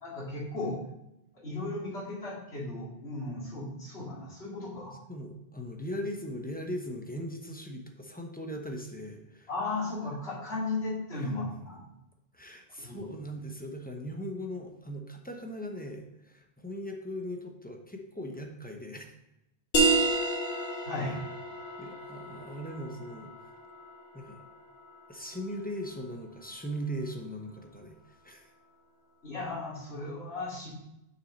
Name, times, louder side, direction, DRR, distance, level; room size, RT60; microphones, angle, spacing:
voice 1, 0.0-0.8 1.3-4.9 9.5-11.8 12.8-13.1 20.8-21.2 29.2-30.7, left 2 dB, 85° left, -5 dB, 2.6 m, -35 dB
voice 2, 5.1-9.5 11.1-11.3 12.3-19.1 21.8-23.3 24.1-24.4 25.1-28.0 28.2-28.5, equal, 10° left, 3 dB, 0.8 m, -39 dB
sound 1, 19.7-25.1, right 2 dB, 50° left, 1.1 m, -31 dB
6.3 x 6.2 x 4.0 m, 0.86 s
omnidirectional pair, 1.1 m